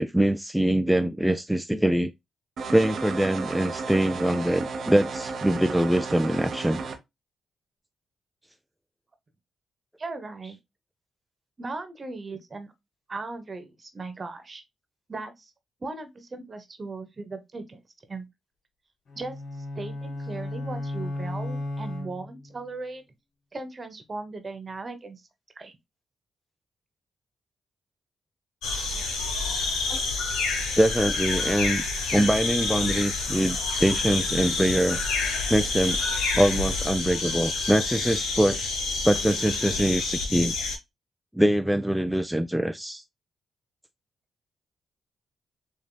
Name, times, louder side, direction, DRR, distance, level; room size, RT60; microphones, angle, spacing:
voice 1, 0.0-2.1 2.7-6.8 29.9-30.0 30.8-35.0 35.5-36.0 36.3-38.7 39.0-40.5 41.3-43.0, right 1 dB, 5° right, 0.4 m, -23 dB
sound 1, 2.6-7.0, right 4 dB, 65° right, 0.7 m, -33 dB
voice 2, 10.0-10.6 11.6-12.7 13.1-14.6 15.1-15.5 15.8-17.8 18.1-18.2 19.2-19.3 19.7-23.0 23.5-25.2 25.6-25.8, right 3 dB, 40° right, 1.1 m, -37 dB
sound 2, 19.1-22.6, left 1 dB, 65° left, 1.6 m, -34 dB
sound 3, 28.6-40.8, left 3 dB, 80° left, 1.1 m, -28 dB
6.9 x 2.7 x 2.2 m
hypercardioid pair, 40°, 0 cm